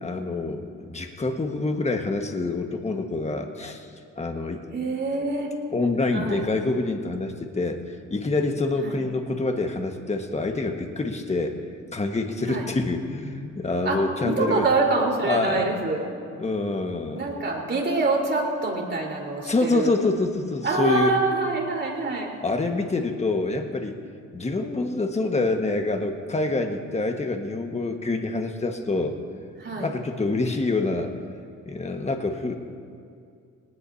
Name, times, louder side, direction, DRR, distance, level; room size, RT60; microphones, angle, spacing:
voice 1, 0.0-3.9 4.2-4.6 5.7-7.8 8.1-11.6 11.9-14.7 15.2-15.7 16.4-17.2 19.5-21.2 22.4-24.0 24.3-29.2 29.8-31.1 31.6-32.6, left 3 dB, 20° left, 4 dB, 1.6 m, -26 dB
voice 2, 4.7-5.5 6.1-6.5 8.8-9.0 12.5-12.7 13.8-16.0 17.1-19.9 20.6-22.3 29.6-29.9, right 3 dB, 35° right, -2 dB, 4.3 m, -25 dB
23.0 x 19.0 x 2.8 m, 2.3 s
cardioid pair, 90°, 30 cm